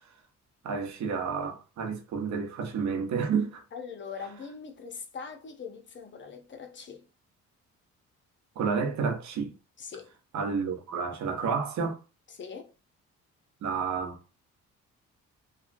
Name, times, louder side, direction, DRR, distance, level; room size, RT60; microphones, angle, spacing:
voice 1, 0.6-3.6 8.6-9.5 10.3-12.0 13.6-14.2, right 5 dB, 65° right, 0.8 m, -30 dB
voice 2, 3.7-7.1 9.8-10.1 12.3-12.7, left 6 dB, 40° left, 0.7 m, -42 dB
3.0 x 2.2 x 2.5 m
cardioid pair, 90°, 30 cm